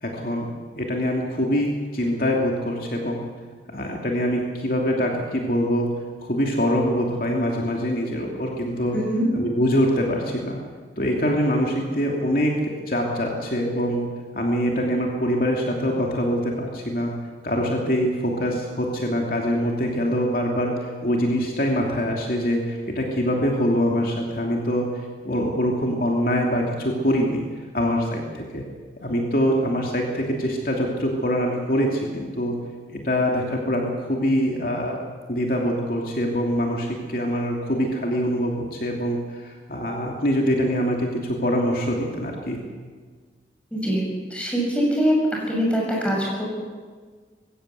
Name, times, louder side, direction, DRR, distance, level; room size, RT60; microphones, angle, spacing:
voice 1, 0.0-3.3 3.7-5.9 6.2-9.0 9.3-10.6 11.0-12.5 12.9-14.1 14.3-17.1 17.4-24.9 25.2-27.4 27.7-28.6 29.0-32.6 32.9-35.0 35.3-42.6, equal, 55° left, -1 dB, 2.8 m, -24 dB
voice 2, 8.9-9.3 43.7-44.0 44.3-45.1 45.5-46.5, equal, 5° left, -3 dB, 6.8 m, -23 dB
21.5 x 16.5 x 8.3 m, 1.5 s
head